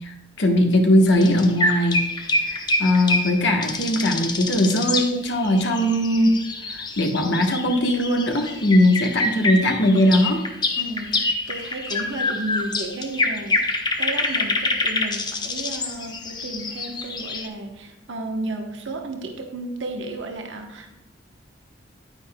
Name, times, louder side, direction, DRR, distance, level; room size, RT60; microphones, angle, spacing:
voice 1, 0.0-2.0 2.4-6.4 6.7-10.4, left 1 dB, 70° left, 2 dB, 1.2 m, -20 dB
sound 1, 1.1-17.5, left 2 dB, 25° left, 0.7 m, -26 dB
voice 2, 10.8-20.9, right 2 dB, 75° right, 3 dB, 1.1 m, -33 dB
9.7 x 9.4 x 2.3 m, 0.92 s
head